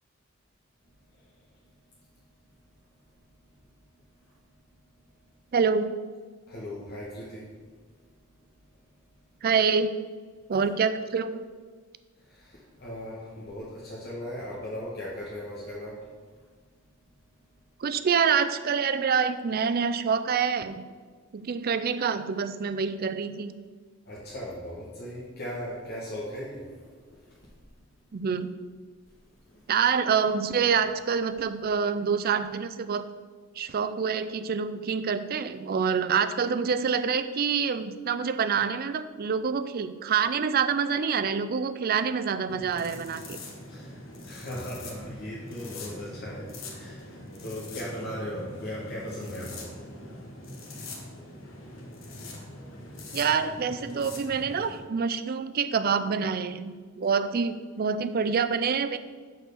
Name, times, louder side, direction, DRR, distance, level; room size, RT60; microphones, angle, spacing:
voice 1, 0.9-2.2 2.6-5.4 6.5-9.4 12.2-16.4 16.7-16.9 17.4-17.6 24.0-27.9 29.2-29.6 43.7-49.8 50.2-52.4 52.9-53.0, equal, 55° left, -6 dB, 1.4 m, -40 dB
voice 2, 5.5-5.9 9.4-9.9 10.5-11.4 17.8-20.9 21.3-23.5 28.1-28.5 29.7-33.1 33.6-43.4 53.1-59.0, right 6 dB, 50° right, 11 dB, 0.4 m, -26 dB
sound 1, 42.5-54.8, left 2 dB, 70° left, 1.3 m, -43 dB
6.4 x 4.6 x 6.7 m, 1.5 s
head